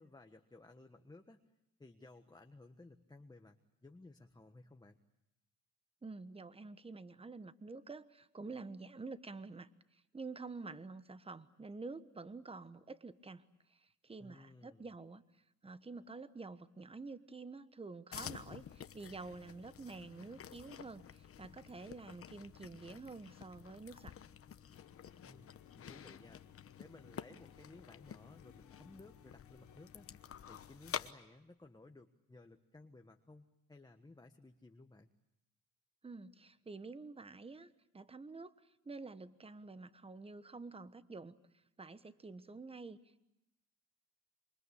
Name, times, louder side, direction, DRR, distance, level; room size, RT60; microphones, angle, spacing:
voice 1, 0.0-1.4 1.8-5.0 14.2-14.9 25.2-26.4 26.8-30.2 30.5-35.1, left 2 dB, 15° left, 5 dB, 1.4 m, -58 dB
voice 2, 6.0-13.4 13.7-15.2 15.6-24.2 36.0-38.5 38.8-41.4 41.8-43.0, right 3 dB, 20° right, 13 dB, 1.3 m, -49 dB
sound 1, 18.1-31.1, left 9 dB, 50° left, 1.1 m, -50 dB
sound 2, 24.7-31.3, left 10 dB, 75° left, 1.5 m, -64 dB
27.5 x 24.0 x 8.5 m, 0.88 s
cardioid pair, 90°, 30 cm